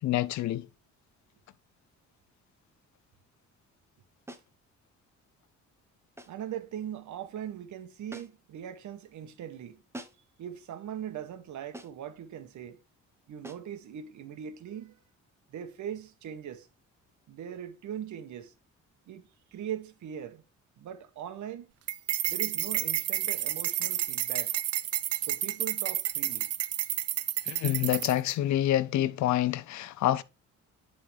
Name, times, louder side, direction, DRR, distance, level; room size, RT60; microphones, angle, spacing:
voice 1, 0.0-0.7 27.4-30.2, left 13 dB, 70° left, 0.6 m, -27 dB
sound 1, 4.3-4.6 6.2-6.5 8.1-8.5 9.9-10.4 11.7-12.1 13.4-13.7, right 1 dB, 10° right, 1.1 m, -46 dB
voice 2, 6.3-9.8 10.4-12.8 13.3-15.0 15.5-16.7 17.3-18.5 19.1-20.4 20.8-21.7 22.3-24.6 25.3-26.5, right 9 dB, 70° right, 1.3 m, -40 dB
sound 2, 21.9-28.3, right 12 dB, 55° right, 0.5 m, -31 dB
10.5 x 3.9 x 3.4 m
cardioid pair, 90°, 30 cm